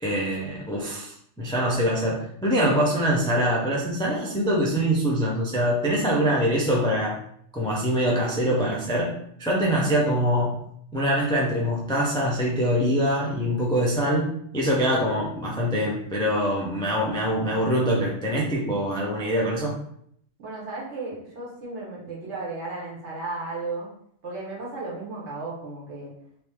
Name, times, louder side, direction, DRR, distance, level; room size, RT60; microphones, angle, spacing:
voice 1, 0.0-7.2 7.5-10.6 10.9-19.7, equal, 5° left, -4 dB, 0.4 m, -24 dB
voice 2, 20.4-23.9 24.2-26.1, right 3 dB, 60° right, -6 dB, 1.5 m, -34 dB
2.9 x 2.7 x 3.5 m, 0.68 s
omnidirectional pair, 1.3 m